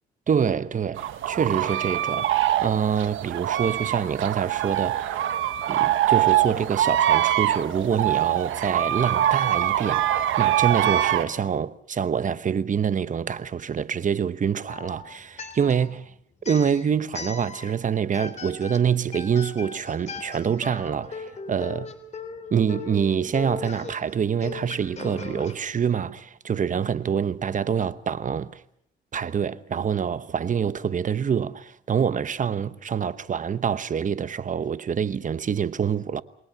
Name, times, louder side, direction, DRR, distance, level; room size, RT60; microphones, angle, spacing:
voice 1, 0.3-5.2 5.7-16.1 16.4-21.9 22.5-28.6 29.1-36.2, right 7 dB, 40° right, 1.0 m, -26 dB
sound 1, 0.9-11.2, right 12 dB, 80° right, 1.2 m, -23 dB
sound 2, 14.7-16.0 16.4-17.8 18.1-25.5, left 5 dB, 35° left, 3.3 m, -38 dB
28.0 x 21.0 x 5.9 m
cardioid pair, 90°, 20 cm